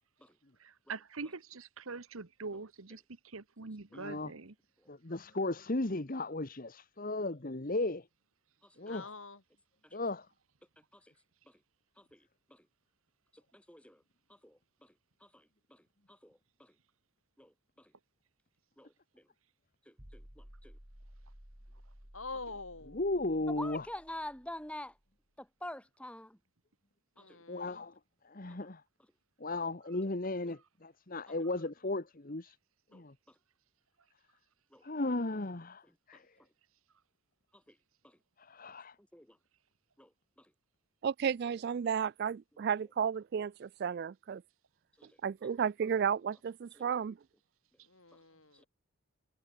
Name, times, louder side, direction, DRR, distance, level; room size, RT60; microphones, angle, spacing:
voice 1, 0.6-4.5, right 4 dB, 70° right, 1.2 m, -44 dB
voice 2, 3.9-4.3 4.9-8.1 8.8-9.1 9.9-10.3 22.9-23.9 27.5-27.9 28.2-28.8 29.4-32.6 32.9-33.1 34.8-35.8 36.1-36.3 38.4-38.9, left 2 dB, 40° left, 1.2 m, -35 dB
voice 3, 8.7-9.4 22.1-23.0 27.2-27.9 47.9-48.7, left 3 dB, 65° left, 5.6 m, -46 dB
voice 4, 13.5-14.0 14.4-14.6 15.3-15.4 15.7-15.8 16.1-16.7 17.4-17.9 18.8-19.2 19.9-20.7 23.5-24.9 25.4-26.4 27.2-27.4 32.9-33.0 34.7-34.8 39.1-39.4 40.0-40.1 45.0-45.1 48.6-48.7, left 1 dB, 5° left, 3.6 m, -46 dB
sound 1, 20.0-25.0, equal, 20° right, 2.9 m, -56 dB
voice 5, 41.0-44.4 45.2-47.2, right 7 dB, 50° right, 0.3 m, -33 dB
head